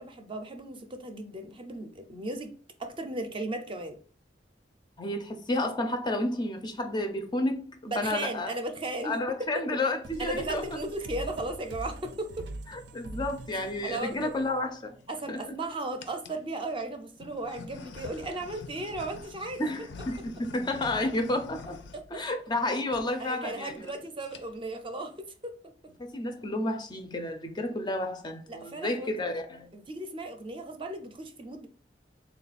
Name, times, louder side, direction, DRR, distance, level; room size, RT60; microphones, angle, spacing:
voice 1, 0.0-2.5 2.8-4.0 7.9-9.7 10.2-12.5 13.8-14.3 15.1-19.6 20.2-20.3 21.9-22.3 23.2-25.5 28.5-29.1 29.7-31.7, right 2 dB, 30° right, 0.5 m, -36 dB
voice 2, 5.0-7.6 8.0-8.5 9.0-10.7 12.7-15.0 15.3-15.4 19.6-21.8 22.1-23.7 26.0-29.7, left 1 dB, 25° left, 0.4 m, -31 dB
sound 1, 10.0-15.3, right 2 dB, 80° right, 0.5 m, -43 dB
sound 2, 14.1-14.3 15.0-15.5 16.0-16.5 17.2-22.6 22.9-23.1 23.4-23.5 23.7-24.0 24.2-24.7, left 4 dB, 80° left, 0.5 m, -46 dB
3.5 x 2.3 x 4.0 m
head